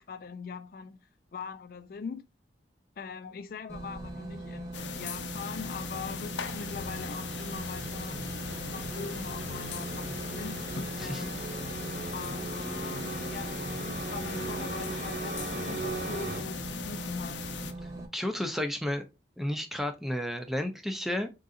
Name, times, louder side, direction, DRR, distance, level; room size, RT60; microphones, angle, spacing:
voice 1, 0.0-2.3 3.0-8.2 8.7-10.6 11.0-11.5 12.1-17.5, left 5 dB, 55° left, 0.3 m, -42 dB
sound 1, 3.7-18.1, right 2 dB, 20° right, 1.0 m, -41 dB
sound 2, 4.7-17.7, left 6 dB, 85° left, 0.6 m, -40 dB
sound 3, 4.8-16.4, right 2 dB, 65° right, 1.4 m, -40 dB
voice 2, 18.1-19.0 19.4-21.3, left 1 dB, ahead, 0.5 m, -32 dB
3.8 x 3.8 x 2.4 m
head